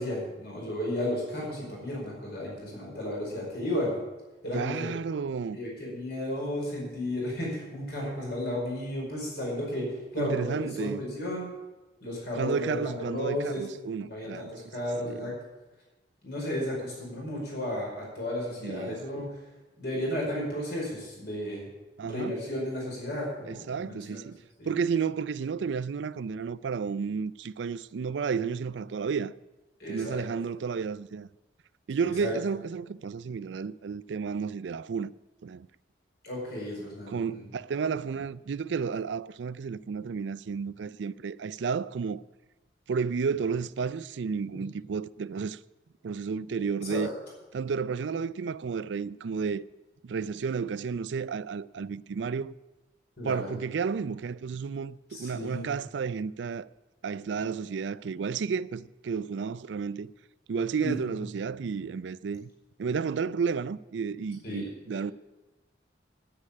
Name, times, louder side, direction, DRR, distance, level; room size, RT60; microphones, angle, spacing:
voice 1, 0.0-4.0 4.4-4.9 5.5-9.9 10.1-11.5 12.0-13.7 14.0-15.3 16.2-19.3 19.8-21.7 22.1-24.3 24.6-24.7 29.8-30.2 32.2-32.3 36.2-37.4 44.5-44.6 46.6-47.1 53.2-53.5 55.1-55.7 60.8-61.2 64.4-64.6, left 1 dB, 60° left, 5.0 m, -33 dB
voice 2, 4.5-5.6 10.2-11.0 12.3-14.5 15.0-15.2 18.6-19.3 22.0-22.3 23.5-29.3 29.9-31.3 31.9-35.1 35.4-35.7 37.1-42.2 42.9-45.6 46.0-47.1 47.5-49.6 50.0-52.5 53.2-56.7 57.0-60.1 60.5-62.5 62.8-65.1, right 5 dB, 70° right, 0.4 m, -32 dB
9.8 x 9.8 x 8.6 m
head